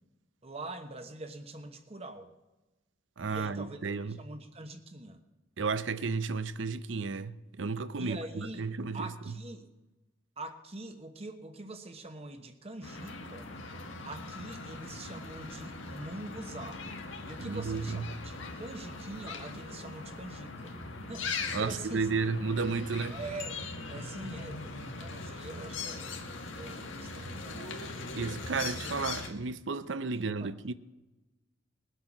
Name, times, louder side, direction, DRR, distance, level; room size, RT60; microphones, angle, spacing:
voice 1, 0.4-2.3 3.3-5.2 8.0-8.7 8.9-9.7 10.4-13.5 13.9-16.8 17.2-20.7 21.1-22.1 23.0-23.6 23.9-26.2 26.5-28.0 30.1-30.5, right 2 dB, 30° right, 1.0 m, -44 dB
voice 2, 3.2-4.2 5.6-9.3 17.4-18.0 21.5-23.2 28.1-30.7, right 4 dB, 70° right, 0.6 m, -33 dB
sound 1, 12.8-29.3, left 3 dB, 80° left, 2.0 m, -40 dB
20.5 x 8.1 x 6.0 m
head